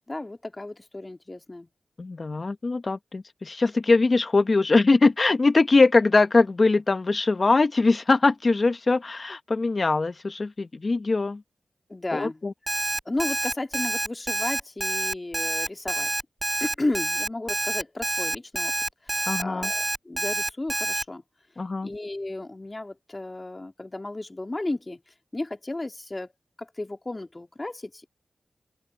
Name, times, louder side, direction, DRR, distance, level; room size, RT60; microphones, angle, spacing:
voice 1, 0.1-1.7 11.9-12.4 13.1-16.1 16.6-18.7 19.1-21.2 21.8-25.0 25.3-26.3 26.6-28.1, left 2 dB, 30° left, 2.5 m, -33 dB
voice 2, 2.0-11.4 12.1-12.5 19.3-19.7 21.6-21.9, left 3 dB, 50° left, 1.4 m, -22 dB
Alarm, 12.7-21.0, right 1 dB, 25° right, 2.1 m, -27 dB
open air
cardioid pair, 55°, 0 cm